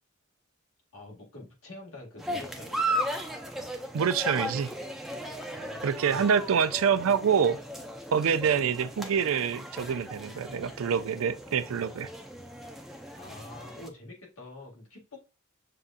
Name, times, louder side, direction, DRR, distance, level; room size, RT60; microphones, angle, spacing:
voice 1, 0.9-3.0 5.5-5.8 6.1-6.3 13.2-15.2, left 2 dB, 75° left, 1.9 m, -46 dB
sound 1, 2.2-13.9, right 1 dB, ahead, 0.5 m, -36 dB
voice 2, 3.9-4.7 5.8-7.6 8.1-12.1, right 7 dB, 75° right, 0.4 m, -26 dB
6.6 x 2.4 x 2.4 m
head